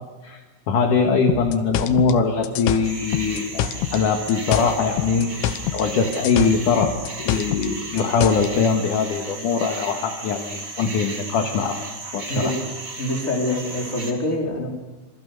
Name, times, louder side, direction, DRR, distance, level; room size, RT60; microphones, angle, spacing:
voice 1, 0.2-6.9 7.2-11.9 12.1-12.5, left 5 dB, 55° left, 4 dB, 2.5 m, -22 dB
sound 1, 1.3-4.0 4.3-5.9 6.1-8.5, left 11 dB, 85° left, 3.5 m, -26 dB
sound 2, 2.8-14.1, right 3 dB, 30° right, 3.4 m, -35 dB
voice 2, 13.0-14.7, left 1 dB, 15° left, -1 dB, 4.0 m, -25 dB
27.5 x 25.5 x 6.6 m, 1.2 s
omnidirectional pair, 5.4 m